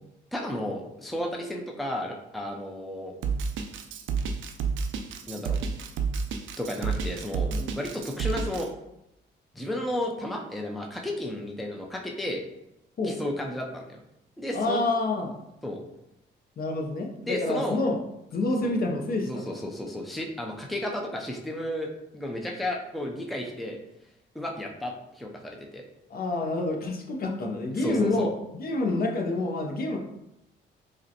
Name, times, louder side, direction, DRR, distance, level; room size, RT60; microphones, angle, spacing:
voice 1, 0.3-3.1 5.3-5.6 6.6-7.5 7.8-8.7 9.5-12.4 13.0-14.0 14.4-14.8 15.6-15.8 17.2-17.8 18.6-18.7 19.3-23.8 24.3-25.8 27.8-28.3, left 1 dB, ahead, 1 dB, 0.5 m, -33 dB
Drum kit, 3.2-8.6, right 5 dB, 75° right, 0.4 m, -29 dB
voice 2, 7.4-7.7 13.0-13.2 14.5-15.3 16.6-18.0 18.3-19.6 26.1-28.3 28.5-30.0, left 2 dB, 50° left, 2 dB, 0.6 m, -28 dB
4.9 x 2.1 x 2.8 m, 0.85 s
cardioid pair, 90°, 20 cm